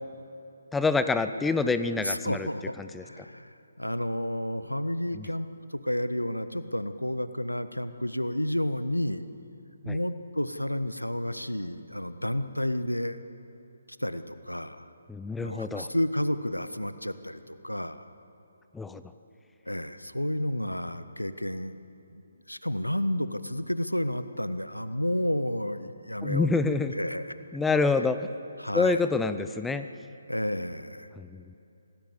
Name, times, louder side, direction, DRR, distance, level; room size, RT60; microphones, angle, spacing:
voice 1, 0.7-2.5 2.8-3.0 5.1-5.3 9.9-10.0 15.1-15.9 18.7-19.0 26.2-26.9 27.5-28.3 28.7-29.9 31.2-31.5, left 3 dB, 5° left, 11 dB, 0.6 m, -27 dB
voice 2, 2.0-2.7 3.0-9.2 9.8-13.2 14.0-14.9 15.4-18.1 19.7-21.8 22.1-22.2 22.5-27.3 28.6-29.1 30.3-31.1, left 1 dB, 90° left, 12 dB, 1.2 m, -31 dB
26.5 x 19.0 x 7.4 m, 2.8 s
figure-of-eight pair, 140°, 0 cm